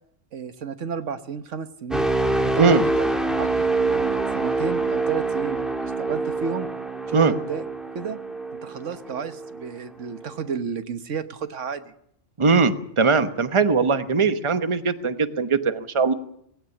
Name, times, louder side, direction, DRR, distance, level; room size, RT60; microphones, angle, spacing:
voice 1, 0.3-2.1 2.5-3.1 3.3-6.7 7.1-7.6 7.9-8.2 8.6-11.9, right 6 dB, 85° right, 11 dB, 1.5 m, -32 dB
sound 1, 1.9-9.7 10.2-10.4, right 2 dB, ahead, 1.5 m, -26 dB
voice 2, 12.4-16.1, right 4 dB, 25° right, 11 dB, 1.0 m, -20 dB
19.0 x 16.0 x 9.7 m, 0.73 s
omnidirectional pair, 1.2 m